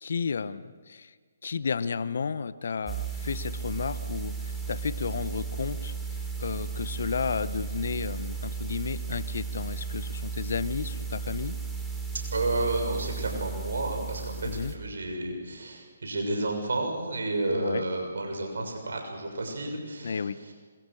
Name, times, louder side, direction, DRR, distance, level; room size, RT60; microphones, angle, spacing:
voice 1, 0.0-1.1 1.4-5.9 6.4-11.6 14.4-14.7 17.5-17.8 20.0-20.4, left 5 dB, 65° left, 15 dB, 0.9 m, -32 dB
sound 1, 2.9-14.7, right 5 dB, 5° right, 3.1 m, -35 dB
voice 2, 12.3-20.2, right 2 dB, 70° right, 2 dB, 6.7 m, -31 dB
27.0 x 23.0 x 6.5 m, 1.5 s
figure-of-eight pair, 140°, 0 cm